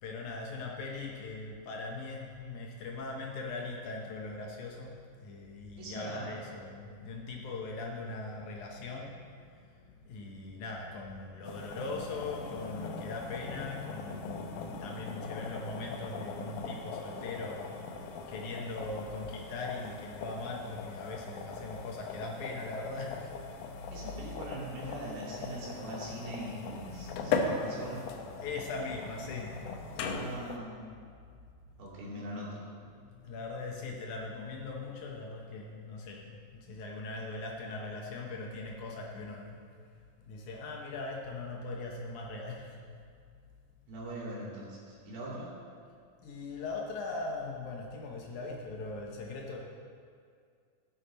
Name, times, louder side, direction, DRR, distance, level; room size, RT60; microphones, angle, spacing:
voice 1, 0.0-24.1 25.4-25.6 26.1-26.3 26.8-30.1 33.0-39.6 40.3-42.8 46.2-49.6, left 3 dB, 70° left, 0 dB, 1.9 m, -40 dB
voice 2, 5.8-6.4 23.9-28.0 30.0-30.9 31.8-32.7 43.9-45.5, right 1 dB, 85° right, -5 dB, 4.8 m, -41 dB
sound 1, 11.4-30.6, left 4 dB, 90° left, 1.8 m, -40 dB
17.0 x 7.0 x 4.1 m, 2.2 s
omnidirectional pair, 4.7 m